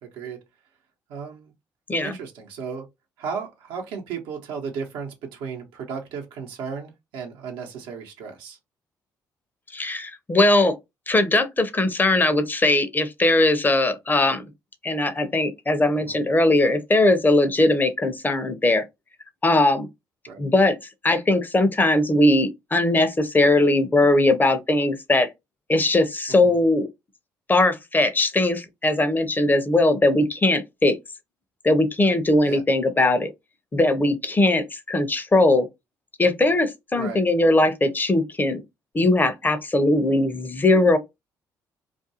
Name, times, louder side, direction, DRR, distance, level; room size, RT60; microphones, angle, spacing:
voice 1, 0.0-0.4 1.1-1.5 2.0-2.9 3.2-8.6 15.9-16.2 20.3-20.4 26.3-26.6 32.4-32.6 37.0-37.2, right 6 dB, 85° right, 0.8 m, -35 dB
voice 2, 9.7-10.8 11.1-14.5 14.8-18.8 19.4-19.9 20.4-20.8 21.0-25.3 25.7-26.9 27.5-31.0 31.6-33.3 33.7-35.7 36.2-38.6 38.9-41.0, left 2 dB, 25° left, 0.6 m, -20 dB
2.4 x 2.2 x 2.7 m
supercardioid pair, 65°, 8 cm